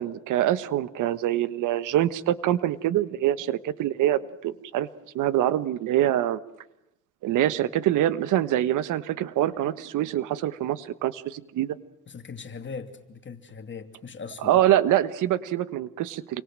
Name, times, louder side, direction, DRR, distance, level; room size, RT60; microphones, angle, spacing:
voice 1, 0.0-4.9 5.1-6.4 7.2-11.8 14.4-16.4, right 12 dB, 90° right, 1.3 m, -25 dB
voice 2, 12.1-14.6, left 5 dB, 40° left, 2.8 m, -40 dB
29.0 x 24.0 x 7.6 m
cardioid pair, 90°, 30 cm